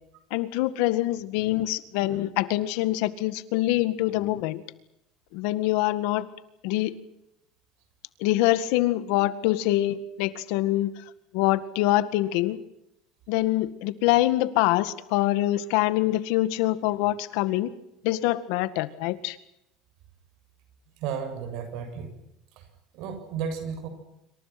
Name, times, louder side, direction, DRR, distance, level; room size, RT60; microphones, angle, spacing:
voice 1, 0.3-4.6 5.3-6.3 6.6-7.0 8.2-11.0 11.3-12.6 13.3-17.8 18.0-19.4, left 16 dB, 75° left, 13 dB, 1.8 m, -25 dB
voice 2, 21.0-22.1 22.6-22.7 22.9-23.9, right 7 dB, 65° right, 8 dB, 7.2 m, -33 dB
27.0 x 25.5 x 6.1 m, 0.82 s
cardioid pair, 155°, 0 cm